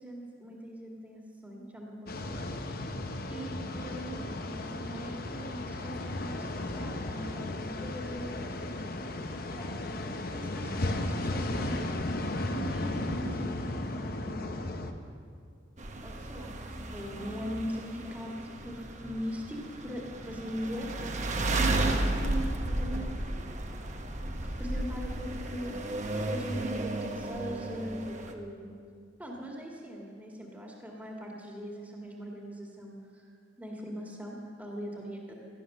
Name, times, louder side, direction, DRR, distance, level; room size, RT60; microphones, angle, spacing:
voice 1, 0.0-2.9 3.3-8.7 9.5-12.2 12.5-14.6 16.0-23.6 24.4-25.7 26.1-28.7 29.2-33.3 33.6-35.3, equal, 10° right, -2 dB, 1.9 m, -40 dB
sound 1, 2.1-14.9, left 2 dB, 50° left, 1.0 m, -35 dB
sound 2, 15.8-28.3, right 2 dB, 40° right, 1.1 m, -34 dB
17.0 x 12.0 x 6.6 m, 2.2 s
head